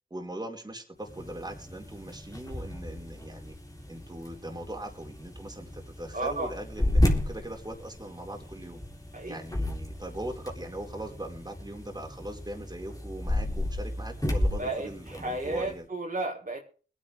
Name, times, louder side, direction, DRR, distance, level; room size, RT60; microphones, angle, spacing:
voice 1, 0.1-3.6 3.9-8.8 9.2-15.9, right 1 dB, 20° right, 1 dB, 4.4 m, -40 dB
sound 1, 1.0-15.8, left 1 dB, 20° left, 3.5 m, -33 dB
voice 2, 6.1-6.5 9.1-9.4 14.6-16.6, right 2 dB, 50° right, -2 dB, 4.1 m, -33 dB
21.5 x 9.9 x 3.5 m, 0.40 s
cardioid pair, 45°, 19 cm